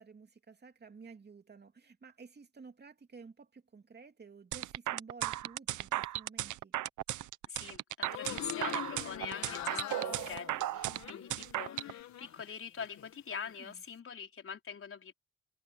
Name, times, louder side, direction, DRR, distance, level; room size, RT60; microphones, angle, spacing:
voice 1, 0.0-6.7 13.6-13.8, right 5 dB, 35° right, 3.1 m, -53 dB
sound 1, 4.5-11.9, right 14 dB, 75° right, 0.9 m, -35 dB
voice 2, 7.5-15.1, left 6 dB, 45° left, 4.2 m, -44 dB
sound 2, 8.0-12.5 12.8-13.5, left 11 dB, 65° left, 1.8 m, -44 dB
cardioid pair, 90°, 30 cm